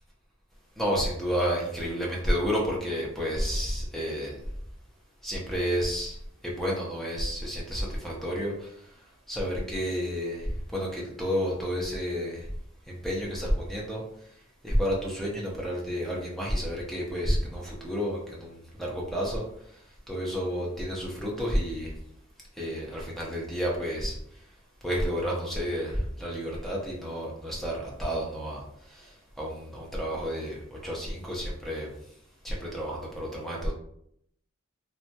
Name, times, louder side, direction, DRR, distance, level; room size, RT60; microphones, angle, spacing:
voice 1, 0.8-4.3 5.2-6.2 6.4-8.7 9.3-12.5 12.9-14.0 14.6-19.4 20.1-21.9 22.6-24.2 24.8-28.6 28.9-29.1 29.4-31.9 32.4-33.7, equal, ahead, -4 dB, 0.5 m, -30 dB
2.7 x 2.2 x 2.7 m, 0.71 s
head